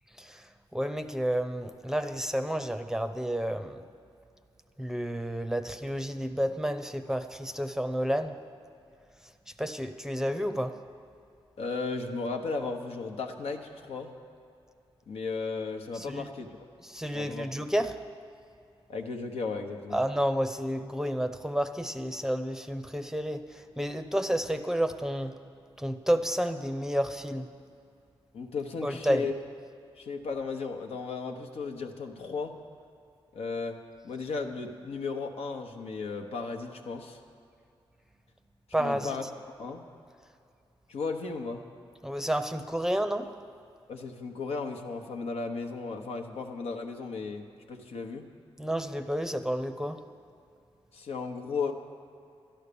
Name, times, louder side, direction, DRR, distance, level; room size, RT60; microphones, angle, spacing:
voice 1, 0.1-3.9 4.8-8.4 9.2-10.8 15.9-16.3 16.8-18.0 19.9-25.3 25.8-27.5 28.8-29.3 38.7-39.2 42.0-43.3 48.6-50.0, equal, 5° right, 9 dB, 0.6 m, -30 dB
voice 2, 11.6-14.1 15.1-16.7 17.1-17.5 18.9-20.0 28.3-29.3 30.0-32.5 33.3-33.8 34.0-37.2 38.8-39.2 39.6-39.8 40.9-41.6 43.9-48.3 50.9-51.7, left 4 dB, 85° left, 4 dB, 1.1 m, -35 dB
11.5 x 11.5 x 6.9 m, 2.5 s
cardioid pair, 85°, 10 cm